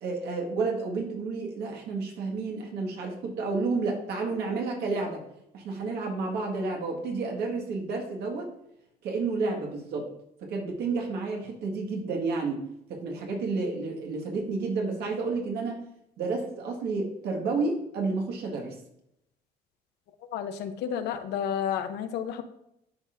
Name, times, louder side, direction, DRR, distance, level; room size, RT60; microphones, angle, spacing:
voice 1, 0.0-5.2 5.5-8.5 9.0-10.1 10.4-12.6 12.9-15.8 16.2-18.8, right 3 dB, 75° right, 1 dB, 1.6 m, -30 dB
voice 2, 20.3-22.4, left 8 dB, 80° left, 9 dB, 0.7 m, -31 dB
11.5 x 4.1 x 2.5 m, 0.79 s
cardioid pair, 110°, 17 cm